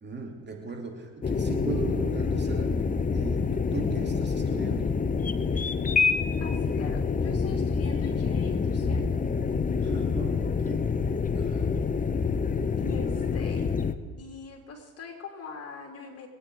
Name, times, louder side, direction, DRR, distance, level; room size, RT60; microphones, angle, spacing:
voice 1, 0.0-2.9 3.1-5.0 9.8-11.0 11.4-11.9 12.8-13.1, right 4 dB, 30° right, 2 dB, 2.7 m, -39 dB
sound 1, 1.2-13.9, left 5 dB, 20° left, 0.9 m, -27 dB
voice 2, 6.4-9.1 12.8-13.7 14.2-16.3, left 5 dB, 40° left, 2 dB, 3.1 m, -42 dB
23.5 x 9.2 x 4.8 m, 1.4 s
hypercardioid pair, 80°, 37 cm